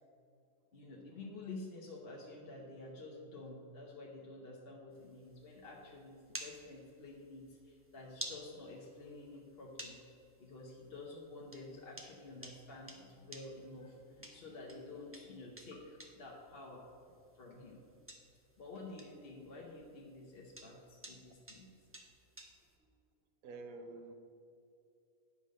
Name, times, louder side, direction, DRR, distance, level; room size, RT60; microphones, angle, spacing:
voice 1, 0.7-10.0 10.4-16.8 17.3-17.9 18.6-21.7, left 2 dB, 45° left, -3 dB, 1.1 m, -50 dB
sound 1, 4.9-22.8, right 1 dB, 10° right, 0.8 m, -54 dB
voice 2, 23.4-24.1, right 3 dB, 70° right, 6 dB, 1.3 m, -48 dB
9.9 x 5.3 x 6.4 m, 2.6 s
omnidirectional pair, 1.5 m